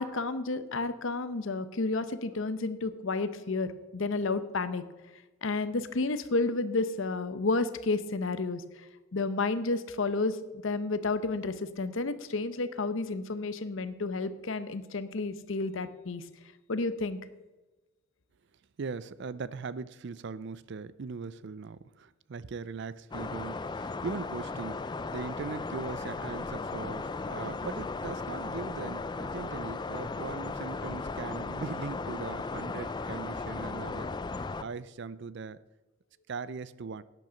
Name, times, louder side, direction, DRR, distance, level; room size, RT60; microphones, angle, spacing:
voice 1, 0.0-4.8 5.4-8.6 9.1-10.4 10.6-16.2 16.7-17.2, left 3 dB, 60° left, 0.7 m, -31 dB
voice 2, 18.8-34.1 34.4-35.6 36.3-37.0, right 4 dB, 55° right, 0.4 m, -40 dB
sound 1, 23.1-34.6, left 3 dB, 20° left, 0.3 m, -36 dB
11.5 x 9.2 x 5.2 m
head